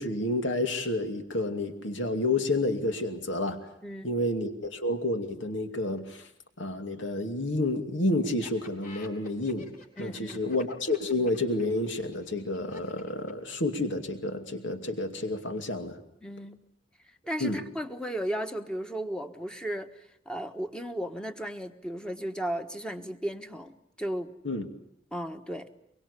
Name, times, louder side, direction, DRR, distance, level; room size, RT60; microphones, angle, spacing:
voice 1, 0.0-3.7 4.0-6.3 6.6-9.7 10.0-16.0 17.4-17.6 24.4-24.7, left 2 dB, 75° left, 7 dB, 2.6 m, -30 dB
voice 2, 3.8-4.1 10.0-10.5 16.2-16.6 17.2-24.3 25.1-25.7, equal, 5° left, 7 dB, 1.4 m, -35 dB
Laughter, 8.2-14.0, left 2 dB, 45° left, 4.6 m, -51 dB
24.5 x 23.5 x 8.3 m, 0.73 s
head